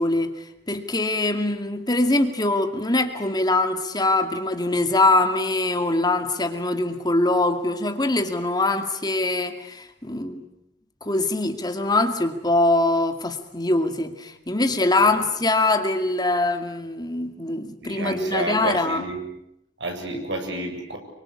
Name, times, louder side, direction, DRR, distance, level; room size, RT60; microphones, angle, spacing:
voice 1, 0.0-10.5 11.0-19.0, left 2 dB, 25° left, 7 dB, 2.3 m, -23 dB
voice 2, 14.7-15.2 17.8-19.2 19.8-21.0, right 1 dB, 75° right, 3 dB, 7.7 m, -31 dB
28.0 x 24.5 x 8.6 m, 0.81 s
head